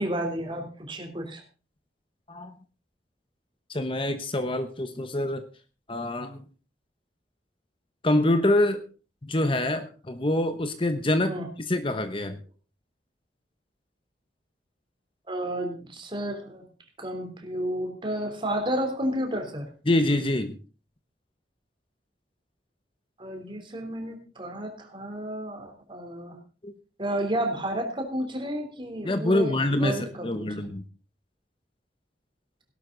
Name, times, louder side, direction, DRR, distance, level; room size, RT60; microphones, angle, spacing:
voice 1, 0.0-1.4 11.2-11.5 15.3-16.7 17.0-19.7 23.2-26.4 27.0-30.7, right 1 dB, 30° right, 4 dB, 3.4 m, -31 dB
voice 2, 3.7-5.4 5.9-6.4 8.0-8.9 9.3-11.3 11.7-12.4 19.9-20.6 26.6-26.7 29.0-30.8, left 1 dB, 30° left, 9 dB, 1.0 m, -25 dB
17.5 x 12.0 x 3.9 m, 0.35 s
head